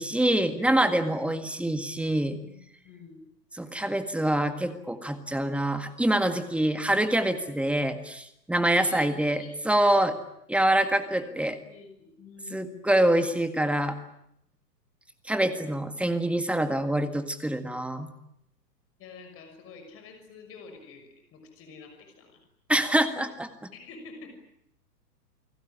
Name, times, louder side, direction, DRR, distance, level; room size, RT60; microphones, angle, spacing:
voice 1, 0.0-2.4 3.5-10.2 10.5-11.6 12.5-14.0 15.3-18.1 22.7-23.5, right 1 dB, ahead, 9 dB, 1.8 m, -25 dB
voice 2, 0.6-1.8 2.4-2.6 2.8-3.2 8.6-9.8 10.7-11.3 11.6-12.8 19.0-22.4 23.7-24.3, left 5 dB, 25° left, 6 dB, 6.3 m, -47 dB
29.5 x 19.0 x 9.9 m, 0.77 s
hypercardioid pair, 120°, 50 cm